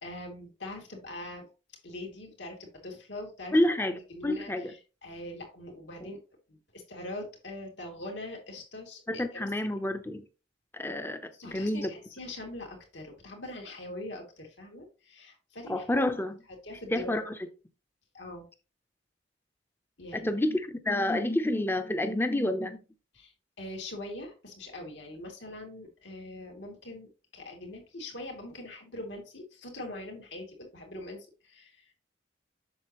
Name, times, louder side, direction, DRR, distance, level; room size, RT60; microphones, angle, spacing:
voice 1, 0.0-1.5 1.8-3.5 4.1-6.2 6.5-9.5 11.3-15.8 16.6-17.3 18.1-18.5 20.0-20.3 23.1-31.9, left 1 dB, 75° left, 2.9 m, -42 dB
voice 2, 3.5-4.7 6.0-6.1 9.1-10.2 10.7-11.9 15.7-16.4 16.9-17.5 20.1-22.8, left 1 dB, 10° left, 0.7 m, -29 dB
7.8 x 6.6 x 3.1 m
head